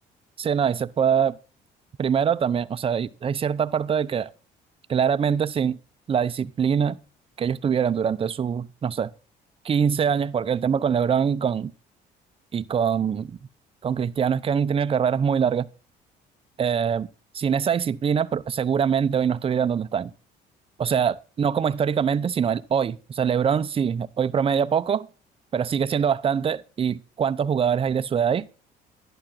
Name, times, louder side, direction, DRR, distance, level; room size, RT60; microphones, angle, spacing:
voice 1, 0.4-1.4 2.0-4.3 4.9-5.8 6.1-7.0 7.4-9.1 9.6-11.7 12.5-13.4 13.8-15.7 16.6-17.1 17.3-20.1 20.8-25.1 25.5-28.4, right 7 dB, 35° right, 0.7 m, -23 dB
11.5 x 11.0 x 3.8 m
cardioid pair, 110°, 17 cm